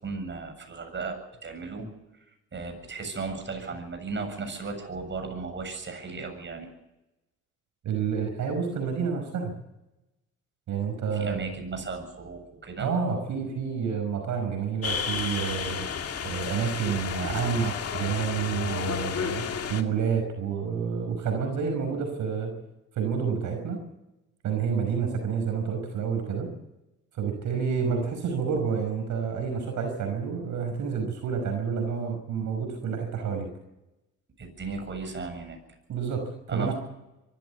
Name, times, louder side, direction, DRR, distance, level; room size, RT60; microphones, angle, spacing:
voice 1, 0.0-1.9 2.5-6.7 11.1-12.9 34.4-35.6 36.5-36.7, right 4 dB, 40° right, 5 dB, 7.6 m, -35 dB
voice 2, 7.8-9.5 10.7-11.4 12.8-15.9 16.2-19.4 19.7-22.5 22.9-23.8 24.4-26.5 27.1-33.5 35.9-36.7, right 6 dB, 75° right, 5 dB, 5.4 m, -29 dB
sound 1, 14.8-19.8, left 6 dB, 50° left, 2.1 m, -32 dB
23.5 x 14.5 x 8.4 m, 0.95 s
cardioid pair, 90°, 30 cm